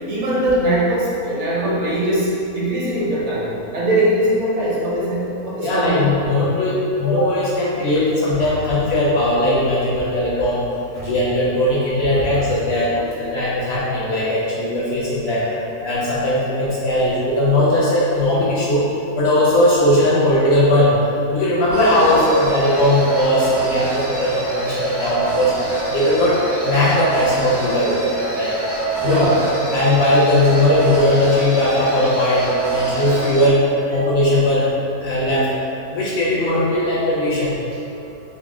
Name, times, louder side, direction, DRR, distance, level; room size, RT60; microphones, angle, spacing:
voice 1, 0.1-2.3 2.5-3.4 3.7-6.3 11.0-11.1 12.7-13.0 29.0-29.5 33.1-33.2, right 1 dB, 55° right, -7 dB, 1.0 m, -21 dB
voice 2, 5.6-10.6 11.0-15.4 15.8-18.8 19.1-20.9 21.3-25.5 25.9-26.4 26.6-28.6 29.0-29.3 29.7-33.6 33.9-34.7 35.0-35.5 35.9-37.5, left 1 dB, 65° left, -6 dB, 0.7 m, -18 dB
sound 1, 21.7-33.5, right 3 dB, 20° right, 0.4 m, -25 dB
4.0 x 2.0 x 3.5 m, 2.6 s
omnidirectional pair, 1.6 m